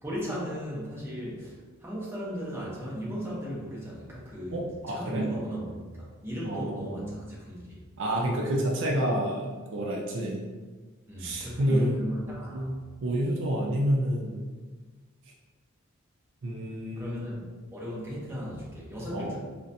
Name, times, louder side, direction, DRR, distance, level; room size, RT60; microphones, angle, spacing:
voice 1, 0.0-7.8 11.1-12.7 17.0-19.4, equal, 10° right, -6 dB, 0.7 m, -36 dB
voice 2, 4.5-5.3 6.4-7.1 8.0-10.4 11.2-12.0 12.5-14.4 16.4-17.3 19.1-19.4, equal, 60° right, -1 dB, 0.4 m, -29 dB
3.9 x 2.1 x 2.6 m, 1.4 s
head